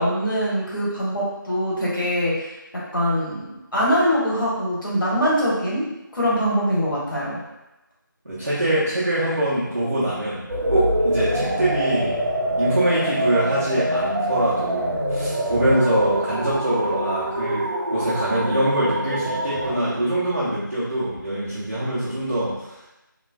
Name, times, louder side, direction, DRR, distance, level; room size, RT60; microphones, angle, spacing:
voice 1, 0.0-5.9 6.1-7.4, equal, 70° left, -7 dB, 1.3 m, -23 dB
voice 2, 8.2-12.2 12.6-22.8, right 1 dB, 45° right, -11 dB, 0.7 m, -24 dB
sound 1, 10.5-19.7, right 1 dB, 70° right, 0.8 m, -25 dB
3.1 x 2.1 x 2.4 m, 0.96 s
figure-of-eight pair, 180°, 11 cm